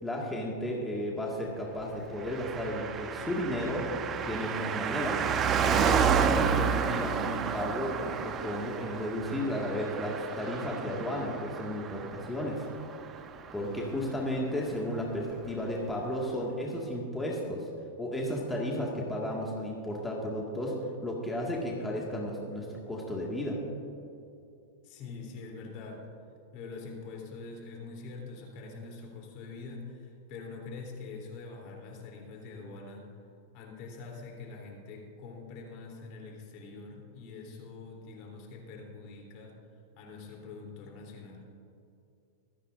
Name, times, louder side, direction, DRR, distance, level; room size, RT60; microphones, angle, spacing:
voice 1, 0.0-3.9 4.2-5.2 5.6-12.7 13.5-17.7 18.0-20.8 21.0-23.6, left 1 dB, 10° left, -3 dB, 1.9 m, -33 dB
Car passing by, 2.2-14.0 14.3-14.4, right 7 dB, 30° right, 0.8 m, -31 dB
voice 2, 24.8-26.0 26.5-33.1 33.5-39.6 39.9-41.5, left 4 dB, 50° left, 0 dB, 3.4 m, -44 dB
25.0 x 9.8 x 2.6 m, 2.6 s
hypercardioid pair, 125°, 0 cm